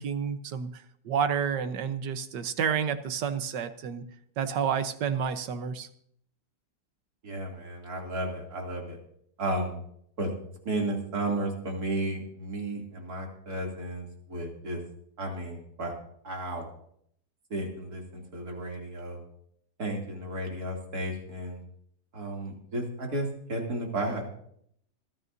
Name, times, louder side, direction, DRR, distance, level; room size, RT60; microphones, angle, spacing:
voice 1, 0.0-4.0 4.4-5.9, right 7 dB, 90° right, 10 dB, 1.6 m, -30 dB
voice 2, 7.2-9.0 9.4-9.8 10.2-10.3 10.6-14.8 15.2-15.9 16.2-16.7 17.5-19.2 19.8-21.6 22.1-24.3, right 1 dB, 60° right, 0 dB, 3.3 m, -33 dB
27.0 x 9.6 x 2.7 m, 0.66 s
omnidirectional pair, 1.8 m